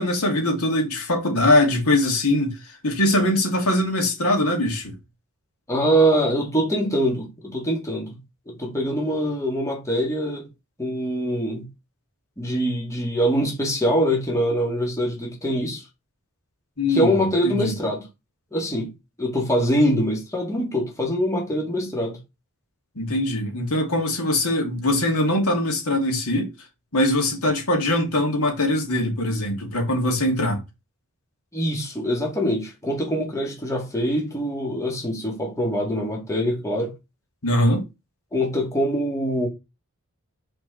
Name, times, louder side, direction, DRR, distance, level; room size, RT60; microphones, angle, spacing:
voice 1, 0.0-5.0 16.8-17.7 23.0-26.5 26.9-30.6 37.4-37.8, left 1 dB, 80° left, 2.6 m, -22 dB
voice 2, 5.7-8.2 8.5-10.5 10.8-11.7 12.4-15.9 16.9-18.1 18.5-18.9 19.2-22.2 31.5-36.9 38.3-39.5, equal, 15° left, 2.0 m, -24 dB
6.1 x 4.4 x 4.2 m
head